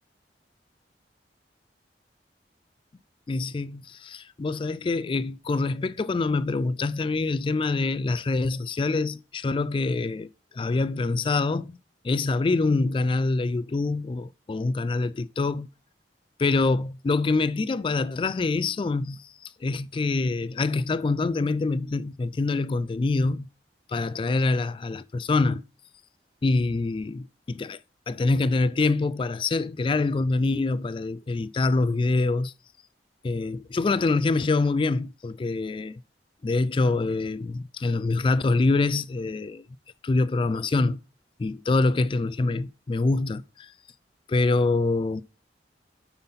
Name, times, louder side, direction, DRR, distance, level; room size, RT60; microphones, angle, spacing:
voice 1, 3.3-10.3 10.5-11.8 12.0-15.7 16.4-23.5 23.9-25.6 26.4-27.8 28.1-32.5 33.2-36.0 36.4-39.6 40.0-41.0 41.4-43.7 44.3-45.2, left 3 dB, 30° left, 0.3 m, -25 dB
7.6 x 5.7 x 4.0 m
head